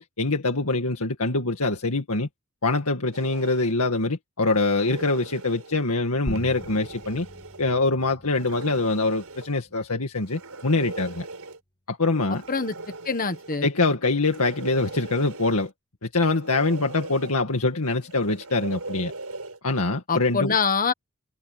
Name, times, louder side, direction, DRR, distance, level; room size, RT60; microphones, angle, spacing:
voice 1, 0.0-2.3 2.6-7.3 7.6-11.3 11.9-12.4 13.6-15.7 16.0-19.1 19.6-20.6, left 3 dB, 75° left, 2.1 m, -24 dB
sound 1, 3.1-3.8 4.5-5.8 6.3-7.6 8.3-9.5 10.2-11.6 12.3-13.6 14.2-15.7 16.2-17.3 18.0-19.6, right 3 dB, 75° right, 6.6 m, -39 dB
sound 2, 6.3-11.3, equal, 20° left, 2.0 m, -42 dB
voice 2, 13.0-13.7 20.1-20.9, left 5 dB, 40° left, 1.4 m, -24 dB
head